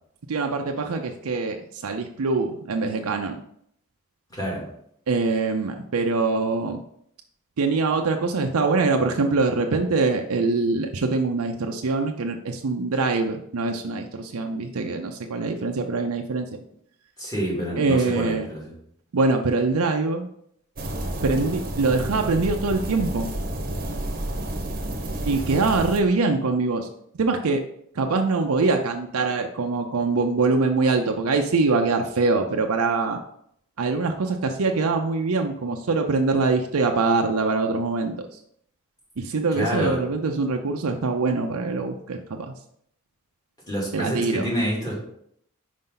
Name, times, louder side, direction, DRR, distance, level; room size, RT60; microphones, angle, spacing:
voice 1, 0.3-3.4 5.1-6.8 7.6-16.6 17.8-18.5 19.1-20.3 21.2-23.3 25.2-26.9 27.1-27.6 27.9-33.2 33.8-38.4 39.2-42.5 43.9-44.5, right 3 dB, 75° right, 4 dB, 0.5 m, -23 dB
voice 2, 4.3-4.6 17.2-18.7 39.5-40.0 43.7-44.9, right 1 dB, 20° left, -5 dB, 2.4 m, -27 dB
sound 1, 20.8-26.0, right 1 dB, 45° right, 0.9 m, -30 dB
5.4 x 5.1 x 3.8 m, 0.70 s
head